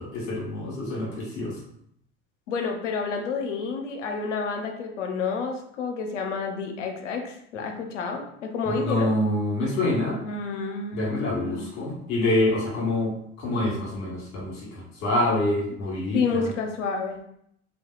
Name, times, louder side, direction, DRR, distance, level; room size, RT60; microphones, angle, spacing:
voice 1, 0.1-1.6 8.8-10.2 10.9-16.5, left 1 dB, 50° left, -4 dB, 1.2 m, -26 dB
voice 2, 2.5-9.1 10.2-11.7 16.1-17.2, left 5 dB, 85° left, 3 dB, 0.5 m, -29 dB
2.7 x 2.2 x 2.2 m, 0.72 s
hypercardioid pair, 70°, 36 cm